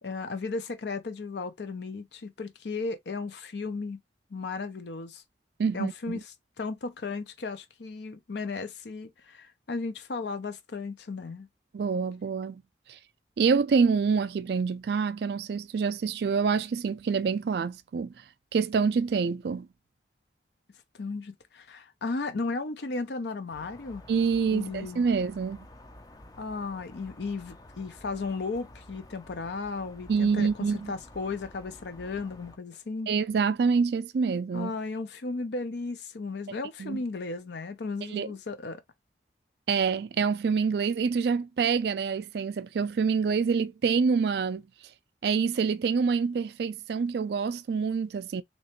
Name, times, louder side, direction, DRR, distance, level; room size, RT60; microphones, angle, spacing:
voice 1, 0.0-4.0 4.3-5.2 5.7-11.5 20.9-24.0 24.5-25.0 26.4-33.1 34.5-38.8, left 3 dB, 70° left, 0.5 m, -35 dB
voice 2, 5.6-6.2 11.7-12.6 13.4-18.1 18.5-19.7 24.1-25.6 30.1-30.9 33.1-34.7 36.8-37.0 38.1-38.3 39.7-44.6 45.2-48.4, right 5 dB, 60° right, 0.3 m, -26 dB
sound 1, 23.5-32.6, left 1 dB, 20° left, 0.4 m, -51 dB
3.2 x 2.9 x 2.9 m
head